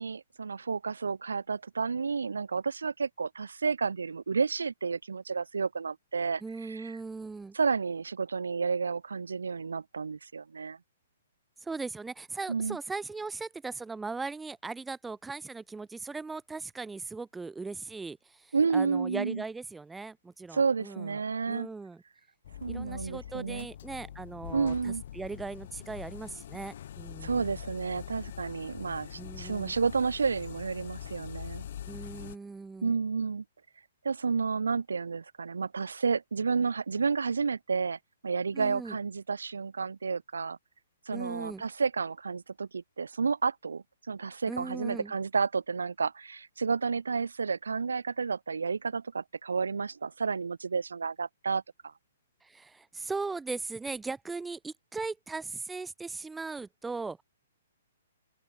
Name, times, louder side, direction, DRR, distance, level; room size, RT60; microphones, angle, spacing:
voice 1, 0.0-7.0 7.5-10.8 12.5-12.8 18.5-19.4 20.5-21.7 22.6-23.7 24.5-25.0 27.2-31.6 32.8-33.4 34.0-40.6 41.1-51.9, right 5 dB, 70° right, 0.9 m, -31 dB
voice 2, 6.4-7.5 11.6-21.2 21.5-22.0 22.7-27.5 29.2-29.7 31.9-32.9 38.5-39.0 41.1-41.6 44.5-45.1 52.4-57.2, right 4 dB, 5° right, 0.6 m, -39 dB
sound 1, 22.4-32.4, left 10 dB, 50° left, 0.7 m, -43 dB
open air
figure-of-eight pair, 120°, 0 cm